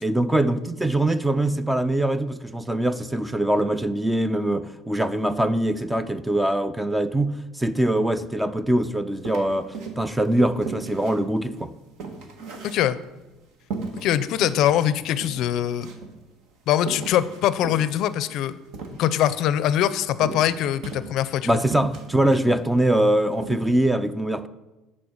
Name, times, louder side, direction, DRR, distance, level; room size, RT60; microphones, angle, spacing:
voice 1, 0.0-11.7 21.5-24.5, right 1 dB, 5° right, 0.4 m, -23 dB
sound 1, 9.2-10.2 10.6-13.2 13.7-14.6 14.9-15.0 15.2-16.2 16.8-19.4 20.2-21.4 21.7-22.6 23.0-23.1 23.4-23.7, right 4 dB, 70° right, 1.5 m, -36 dB
voice 2, 12.6-13.0 14.0-15.9 16.7-18.5 19.0-21.6, left 11 dB, 60° left, 0.4 m, -23 dB
11.5 x 4.4 x 6.4 m
cardioid pair, 130°, 0 cm